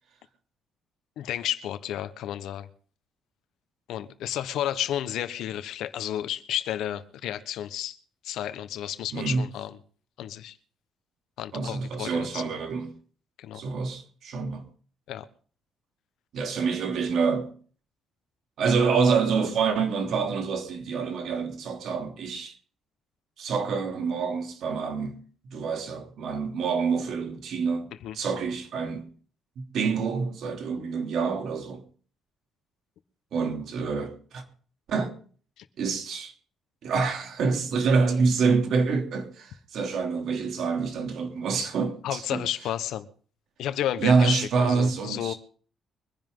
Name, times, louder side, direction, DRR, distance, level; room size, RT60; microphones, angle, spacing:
voice 1, 1.2-2.7 3.9-8.0 8.2-9.8 10.2-10.6 11.4-12.4 13.4-13.6 15.1-15.3 28.0-28.1 35.6-35.7 42.0-43.1 43.6-45.3, left 11 dB, 80° left, 1.2 m, -32 dB
voice 2, 9.1-9.4 11.5-12.9 13.5-14.6 16.3-17.5 18.6-22.5 23.4-25.2 25.5-27.9 28.1-29.1 29.6-31.8 33.3-34.4 34.9-35.1 35.8-36.3 36.8-42.4 44.0-45.3, right 5 dB, 70° right, 3.0 m, -26 dB
24.0 x 10.5 x 3.9 m
cardioid pair, 110°, 0 cm